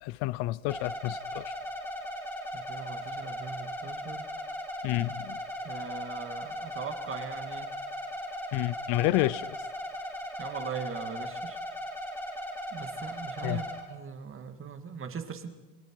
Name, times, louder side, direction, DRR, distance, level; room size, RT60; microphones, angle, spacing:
voice 1, 0.0-1.5 4.8-5.4 8.5-9.5 13.4-13.6, left 18 dB, 65° left, 0.6 m, -29 dB
sound 1, 0.7-13.8, equal, 5° left, 4.0 m, -38 dB
voice 2, 2.5-4.3 5.6-7.7 10.4-11.6 12.7-15.5, right 6 dB, 30° right, 2.0 m, -40 dB
28.5 x 20.5 x 4.6 m
cardioid pair, 125°, 41 cm